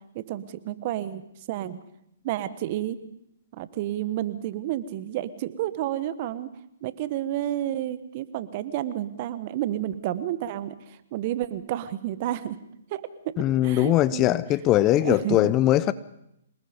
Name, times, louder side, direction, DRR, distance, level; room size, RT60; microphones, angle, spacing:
voice 1, 0.1-1.8 2.2-3.0 3.5-6.5 6.8-12.6 12.9-14.3 15.0-15.5, right 12 dB, 45° right, 1.4 m, -31 dB
voice 2, 13.4-15.9, left 14 dB, 25° left, 0.7 m, -21 dB
27.0 x 19.5 x 5.3 m
hypercardioid pair, 130°, 0 cm